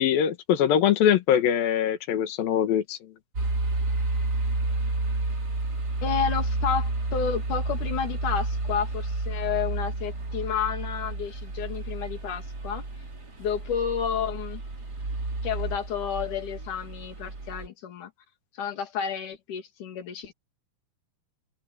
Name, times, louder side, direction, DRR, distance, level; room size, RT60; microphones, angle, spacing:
voice 1, 0.0-3.0, left 9 dB, 85° left, 3.3 m, -22 dB
sound 1, 3.3-17.7, right 2 dB, 30° right, 3.6 m, -30 dB
voice 2, 6.0-12.8 13.4-14.6 15.4-18.1 18.5-20.3, left 7 dB, 60° left, 4.1 m, -31 dB
open air
omnidirectional pair, 4.0 m